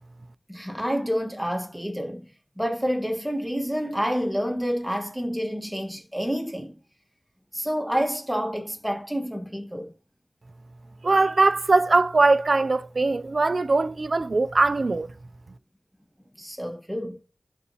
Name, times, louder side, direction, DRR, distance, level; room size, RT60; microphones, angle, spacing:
voice 1, 0.5-2.3 2.6-6.7 7.5-9.9 16.4-17.2, equal, 5° right, 1.5 m, -28 dB
voice 2, 11.0-15.1, right 3 dB, 55° right, 0.4 m, -21 dB
11.0 x 4.1 x 2.9 m
wide cardioid pair, 80°, 0 cm